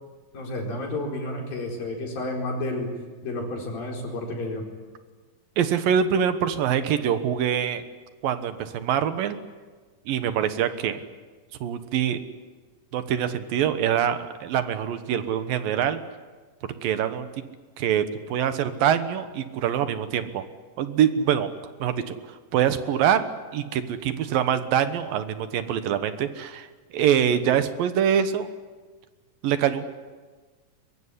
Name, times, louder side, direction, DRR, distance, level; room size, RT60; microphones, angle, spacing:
voice 1, 0.3-2.9 3.2-4.6, left 2 dB, 80° left, 1 dB, 6.3 m, -31 dB
voice 2, 5.6-7.8 8.2-9.4 10.1-11.0 11.6-12.2 12.9-16.0 16.8-17.3 17.8-20.4 20.8-21.5 21.8-22.2 22.5-23.2 23.5-26.7 26.9-28.5 29.4-29.8, right 9 dB, 80° right, 10 dB, 3.0 m, -24 dB
22.5 x 22.5 x 9.9 m, 1.4 s
omnidirectional pair, 4.0 m